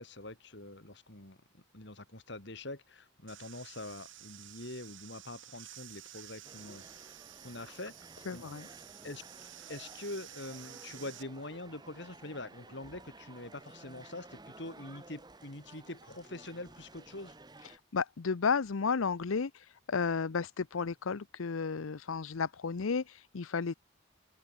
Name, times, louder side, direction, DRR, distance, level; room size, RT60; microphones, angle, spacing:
voice 1, 0.0-7.1 7.4-8.1 8.3-8.5 9.0-9.2 9.7-17.4, left 2 dB, 55° left, 3.3 m, -45 dB
sound 1, 3.3-11.2, right 13 dB, 60° right, 1.4 m, -52 dB
sound 2, 6.4-17.8, right 2 dB, 20° right, 1.2 m, -54 dB
voice 2, 8.3-8.7 17.6-23.7, left 5 dB, 75° left, 0.6 m, -33 dB
open air
head